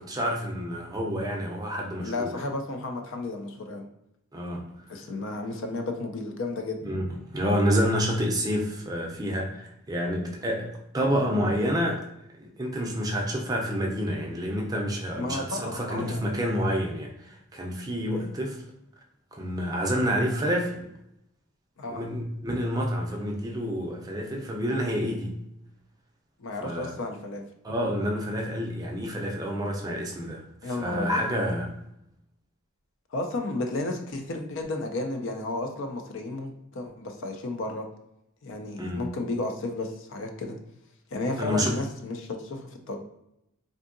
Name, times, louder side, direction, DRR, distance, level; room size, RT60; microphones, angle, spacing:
voice 1, 0.0-2.3 4.3-4.7 6.8-12.0 12.4-18.6 19.3-20.9 21.9-25.4 26.6-26.9 27.6-31.7 38.8-39.0 41.4-41.8, equal, 20° right, 0 dB, 0.5 m, -28 dB
voice 2, 2.0-3.8 4.9-6.8 15.2-16.6 18.1-18.4 21.8-22.0 26.4-27.4 30.6-31.3 33.1-37.9 38.4-40.6 41.1-43.0, left 2 dB, 60° left, 4 dB, 0.4 m, -33 dB
3.5 x 2.6 x 2.5 m, 0.80 s
head